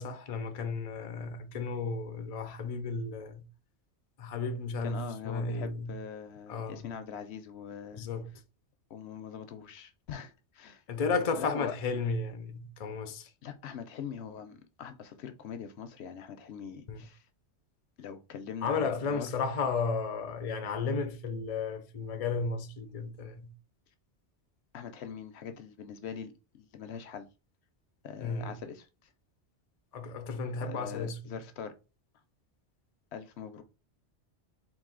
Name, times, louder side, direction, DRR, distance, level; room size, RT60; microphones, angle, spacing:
voice 1, 0.0-3.5 4.2-6.0 6.5-6.9 7.9-8.3 10.9-13.3 16.9-17.1 18.6-23.5 28.2-28.6 29.9-31.4, left 4 dB, 45° left, 0.5 m, -33 dB
voice 2, 4.8-8.0 8.9-10.8 11.3-11.7 13.4-17.3 18.0-19.3 24.7-27.3 28.0-29.1 30.6-31.7 33.1-33.6, left 7 dB, 70° left, 0.8 m, -42 dB
4.0 x 2.6 x 3.7 m
omnidirectional pair, 1.2 m